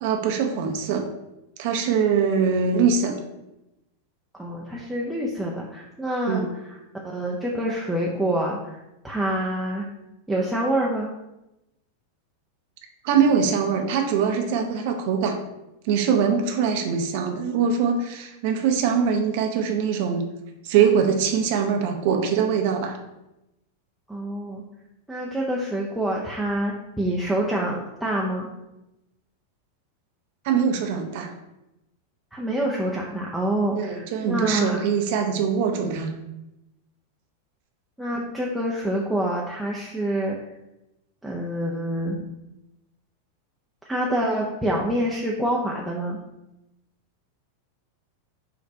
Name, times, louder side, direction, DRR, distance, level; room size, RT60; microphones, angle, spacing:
voice 1, 0.0-1.0 1.6-3.1 6.3-6.5 13.0-15.4 15.8-20.2 20.6-23.0 30.4-31.3 33.8-36.1, right 6 dB, 50° right, 4 dB, 0.6 m, -22 dB
voice 2, 4.3-6.8 7.0-9.9 10.3-11.1 24.1-24.6 25.1-28.5 32.3-34.8 38.0-40.4 41.2-42.2 43.9-46.2, right 1 dB, ahead, -4 dB, 0.6 m, -26 dB
5.1 x 2.5 x 4.1 m, 0.93 s
figure-of-eight pair, 90°, 0 cm